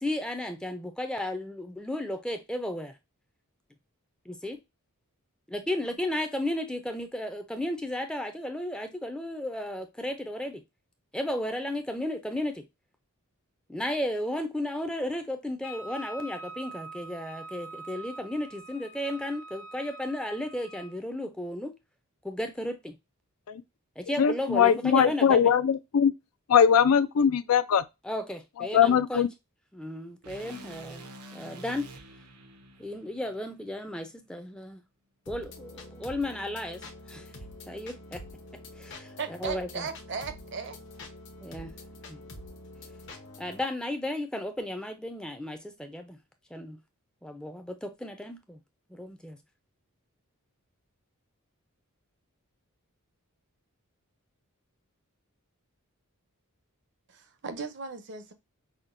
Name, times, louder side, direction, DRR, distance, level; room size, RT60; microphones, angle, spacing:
voice 1, 0.0-2.9 4.3-4.6 5.5-10.6 11.1-12.6 13.7-21.7 22.2-22.9 24.0-25.5 28.0-29.2 29.7-31.0 31.3-31.9 32.8-34.8 35.3-36.8 37.1-37.3 37.7-38.2 38.8-39.9 41.4-41.7 42.1-42.2 43.4-46.2 46.5-46.8 47.2-48.6 48.9-49.4, left 1 dB, 5° left, 0.4 m, -34 dB
Wind instrument woodwind instrument, 15.6-21.0, right 2 dB, 90° left, 0.9 m, -44 dB
voice 2, 24.2-26.1 26.5-27.8 28.7-29.3, left 7 dB, 70° left, 0.4 m, -21 dB
sound 1, 30.2-34.4, right 2 dB, 90° right, 0.9 m, -48 dB
sound 2, 35.3-43.6, left 1 dB, 55° left, 0.9 m, -46 dB
voice 3, 39.2-40.8 57.1-58.3, right 5 dB, 50° right, 0.6 m, -37 dB
5.7 x 2.2 x 2.5 m
head